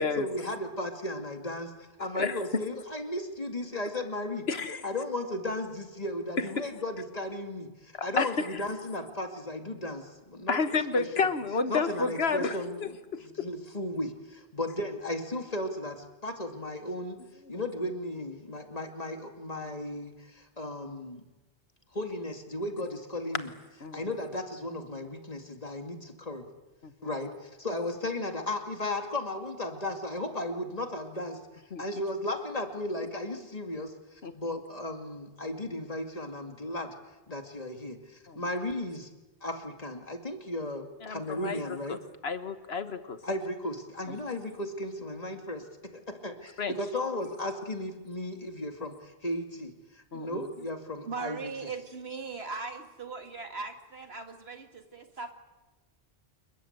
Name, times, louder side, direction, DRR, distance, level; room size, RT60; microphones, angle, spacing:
voice 1, 0.2-1.7 2.0-4.5 4.8-10.6 11.0-11.3 11.7-17.2 17.5-21.2 21.9-23.5 23.9-26.5 27.0-31.4 31.8-36.9 37.3-39.1 39.4-42.0 43.2-51.7, left 1 dB, 35° left, 5 dB, 2.4 m, -35 dB
voice 2, 4.5-4.8 7.9-8.5 10.5-12.6 12.8-13.2 23.8-24.0 26.8-26.9 31.7-31.8 34.2-34.3 38.3-38.4 41.0-41.6 41.9-42.0 42.2-43.2 44.1-44.2 46.6-46.7 50.1-50.5, left 4 dB, 60° left, 10 dB, 1.7 m, -30 dB
voice 3, 51.0-55.3, right 4 dB, 60° right, 5 dB, 2.6 m, -39 dB
27.5 x 21.5 x 8.1 m, 1.1 s
omnidirectional pair, 1.2 m